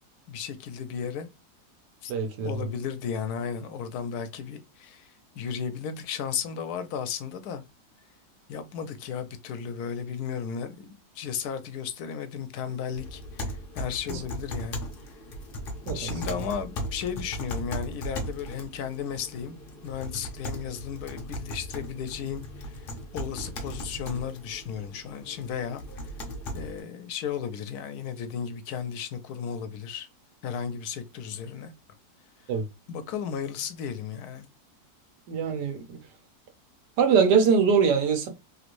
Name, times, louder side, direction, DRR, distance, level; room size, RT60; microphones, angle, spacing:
voice 1, 0.3-1.3 2.0-2.1 2.4-7.6 8.5-14.8 15.1-15.2 15.9-19.6 19.8-25.8 26.5-30.1 30.4-31.7 32.9-34.5, left 7 dB, 75° left, 1.0 m, -34 dB
voice 2, 2.1-2.7 15.9-16.1 32.5-32.6 35.3-36.0 37.0-38.3, right 6 dB, 85° right, 1.4 m, -23 dB
sound 1, 12.9-26.8, equal, 55° left, 0.6 m, -37 dB
3.1 x 3.0 x 2.5 m
omnidirectional pair, 1.8 m